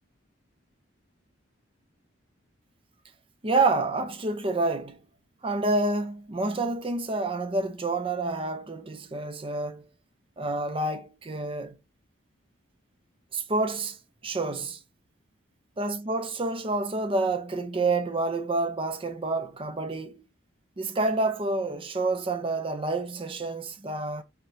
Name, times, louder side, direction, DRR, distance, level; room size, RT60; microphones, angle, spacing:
voice 1, 3.4-5.0 5.4-9.8 10.4-11.8 13.3-14.0 14.2-14.8 15.8-20.2 20.8-24.2, right 2 dB, 25° right, 0.6 m, -28 dB
5.0 x 3.2 x 2.7 m
head